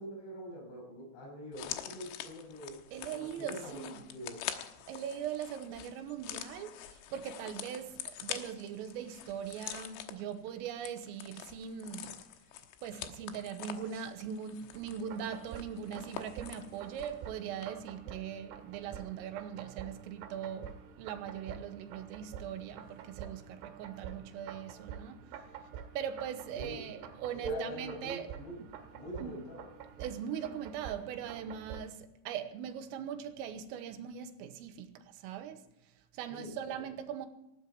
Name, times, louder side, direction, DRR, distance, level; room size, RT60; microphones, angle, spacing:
voice 1, 0.0-2.8 3.2-4.4 26.5-27.0 27.3-28.6 28.9-29.7 36.3-36.8, right 1 dB, 60° left, 8.3 m, -43 dB
sound 1, 1.5-17.2 17.5-17.7, left 11 dB, 85° left, 3.8 m, -45 dB
voice 2, 2.9-4.0 4.9-12.2 12.8-25.2 26.0-28.3 28.6-28.7 29.2-29.3 30.0-35.6 36.1-37.3, right 8 dB, 90° right, 3.7 m, -41 dB
sound 2, 14.7-31.8, right 8 dB, 70° right, 4.0 m, -48 dB
19.0 x 15.0 x 4.7 m
omnidirectional pair, 5.9 m